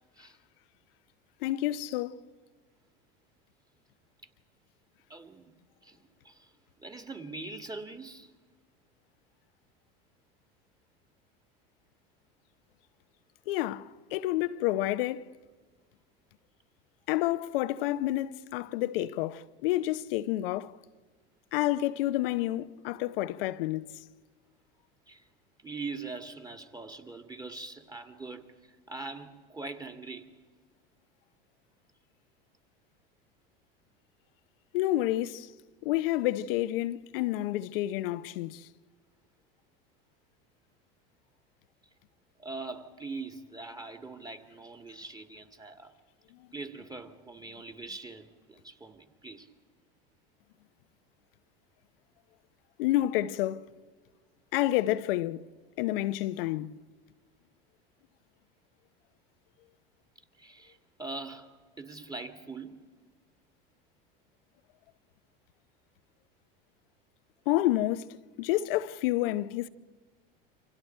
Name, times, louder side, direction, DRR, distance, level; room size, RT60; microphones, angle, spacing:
voice 1, 1.4-2.2 13.5-15.3 17.1-20.7 21.5-24.0 34.7-35.5 35.8-38.7 52.8-53.7 54.5-55.4 55.8-56.7 67.5-68.1 68.4-69.7, left 15 dB, 70° left, 0.9 m, -29 dB
voice 2, 5.1-5.5 5.8-6.5 6.8-8.3 25.1-25.3 25.6-30.4 42.4-45.9 46.5-49.5 60.4-62.9, right 3 dB, 15° right, 2.2 m, -42 dB
28.5 x 25.5 x 4.5 m
hypercardioid pair, 85°, 29 cm